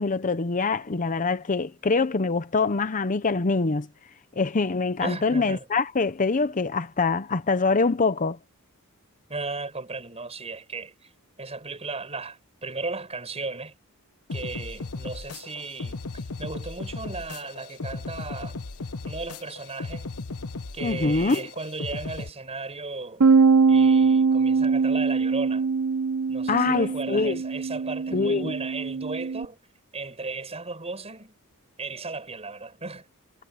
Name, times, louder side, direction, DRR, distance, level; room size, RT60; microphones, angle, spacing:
voice 1, 0.0-3.9 4.4-8.4 20.8-21.5 26.5-27.4 28.1-28.5, left 4 dB, 35° left, 0.7 m, -24 dB
voice 2, 5.0-5.7 9.3-11.1 11.4-13.7 14.3-18.6 19.0-20.1 20.7-23.3 23.7-25.7 26.3-29.6 29.9-31.4 31.8-33.1, right 3 dB, 30° right, 5.9 m, -36 dB
sound 1, 14.3-22.3, left 3 dB, 80° left, 1.1 m, -36 dB
Bass guitar, 23.2-29.5, right 5 dB, 80° right, 0.7 m, -22 dB
head